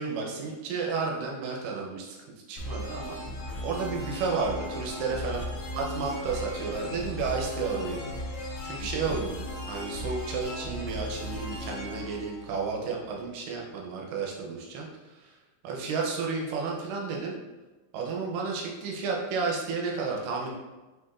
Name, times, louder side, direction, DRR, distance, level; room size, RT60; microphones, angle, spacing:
voice 1, 0.0-2.2 2.5-5.4 5.7-8.0 8.6-9.4 9.7-15.4 15.6-17.4 17.9-20.5, right 4 dB, 80° right, -1 dB, 2.1 m, -32 dB
sound 1, 2.6-13.2, left 1 dB, 65° left, 1.5 m, -37 dB
7.5 x 2.6 x 2.4 m, 1.2 s
omnidirectional pair, 4.1 m